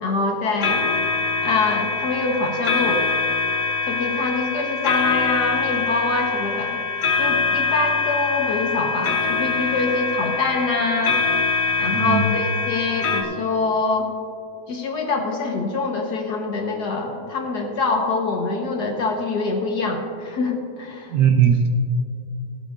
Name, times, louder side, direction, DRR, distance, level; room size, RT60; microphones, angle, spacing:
voice 1, 0.0-0.8 1.4-3.0 3.9-6.7 7.2-11.2 11.8-14.1 14.7-21.1, left 3 dB, 55° left, 2 dB, 1.5 m, -24 dB
Grandfather Clock Strikes Ten - No ticking, 0.6-13.2, left 4 dB, 75° left, 2.0 m, -24 dB
voice 2, 11.9-12.3 21.1-21.7, right 7 dB, 65° right, 3 dB, 1.1 m, -18 dB
17.0 x 12.0 x 2.5 m, 2.5 s
omnidirectional pair, 2.4 m